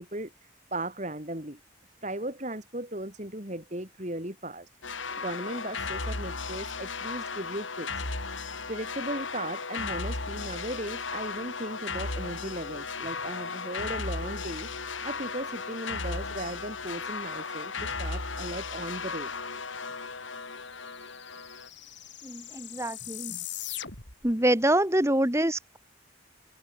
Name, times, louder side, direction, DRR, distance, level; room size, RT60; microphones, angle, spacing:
voice 1, 0.0-1.6 2.0-4.7 5.2-7.9 8.7-14.7 15.0-19.3, right 1 dB, 40° right, 5.0 m, -37 dB
sound 1, 4.8-21.7, left 4 dB, 90° left, 4.7 m, -35 dB
sound 2, 19.8-19.9 20.1-24.3, left 12 dB, 70° left, 6.2 m, -41 dB
voice 2, 22.2-23.4 24.2-25.8, right 1 dB, 15° right, 2.0 m, -26 dB
head